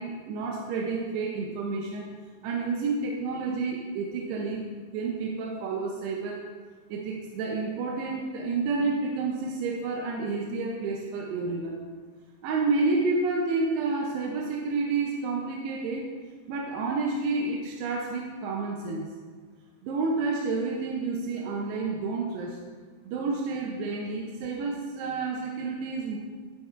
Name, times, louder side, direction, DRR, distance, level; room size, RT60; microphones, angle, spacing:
voice 1, 0.0-2.1 2.4-6.4 6.9-11.8 12.4-16.1 16.5-19.1 19.8-22.6 23.0-26.2, right 3 dB, 80° right, 0 dB, 2.4 m, -30 dB
10.0 x 7.2 x 2.4 m, 1.5 s
omnidirectional pair, 5.3 m